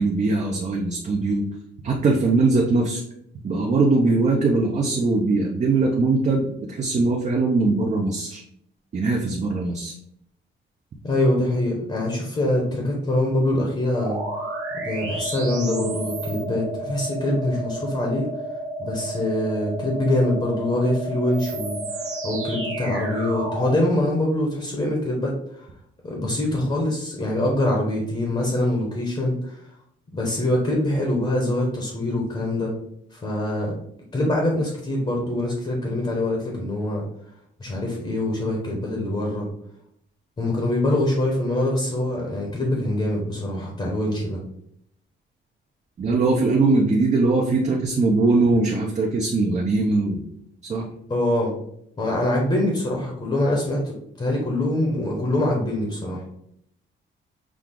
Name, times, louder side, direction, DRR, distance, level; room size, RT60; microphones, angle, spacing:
voice 1, 0.0-1.4 1.8-3.0 3.4-8.4 8.9-9.9 46.0-50.2 50.6-50.8, right 3 dB, 35° right, -1 dB, 0.6 m, -21 dB
voice 2, 11.0-14.2 14.7-18.3 18.8-25.7 26.0-29.6 30.1-32.7 33.1-33.7 34.1-37.0 37.6-39.5 40.4-44.4 51.1-51.5 52.0-56.2, left 1 dB, 25° left, -1 dB, 0.9 m, -24 dB
sound 1, 13.9-23.8, right 1 dB, 75° right, 1.3 m, -31 dB
6.1 x 2.3 x 3.7 m, 0.72 s
wide cardioid pair, 170°, 21 cm